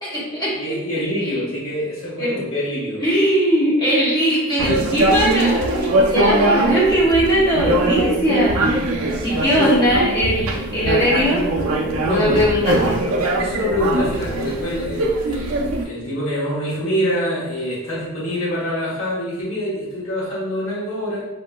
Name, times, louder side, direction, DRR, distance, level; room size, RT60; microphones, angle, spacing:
voice 1, 0.0-0.8 1.2-1.5 2.2-2.4 3.0-8.8 9.2-11.5 12.1-13.0, equal, 20° left, -7 dB, 0.9 m, -20 dB
voice 2, 0.5-3.0 6.5-7.0 9.5-9.6 12.0-12.4 13.4-21.2, equal, 75° left, -8 dB, 1.2 m, -25 dB
sound 1, 4.6-15.8, right 1 dB, 75° right, 0.4 m, -21 dB
3.7 x 2.6 x 2.2 m, 0.99 s
head